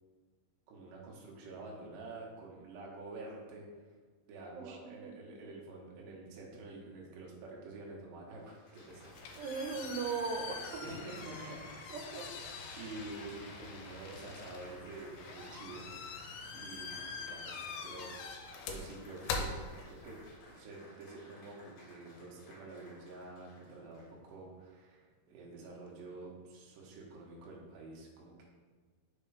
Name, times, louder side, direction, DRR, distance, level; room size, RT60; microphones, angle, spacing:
voice 1, 0.7-3.6 4.3-9.4 10.8-12.0 12.8-15.8 16.5-18.4 18.7-19.6 19.9-20.2 20.5-28.4, right 2 dB, 65° right, -2 dB, 2.2 m, -48 dB
voice 2, 4.5-5.1 9.4-10.8 11.4-11.5 11.9-12.3, right 5 dB, 85° right, 2 dB, 2.8 m, -38 dB
Applause, 8.4-24.3 25.0-25.4, left 1 dB, 60° left, 2.1 m, -55 dB
sound 1, 8.9-20.4, left 4 dB, 80° left, 2.6 m, -44 dB
6.1 x 3.7 x 4.7 m, 1.5 s
omnidirectional pair, 4.7 m